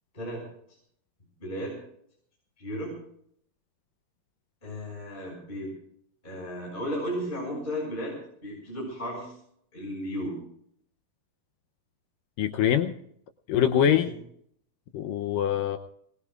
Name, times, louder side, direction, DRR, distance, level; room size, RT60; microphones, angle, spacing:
voice 1, 1.4-1.7 2.6-2.9 4.6-5.7 6.2-9.4 9.7-10.4 13.7-14.1, equal, 10° left, -3 dB, 6.0 m, -34 dB
voice 2, 12.4-12.9 13.5-14.1 14.9-15.8, left 9 dB, 75° left, 7 dB, 2.2 m, -24 dB
23.5 x 20.5 x 2.5 m, 0.67 s
omnidirectional pair, 4.4 m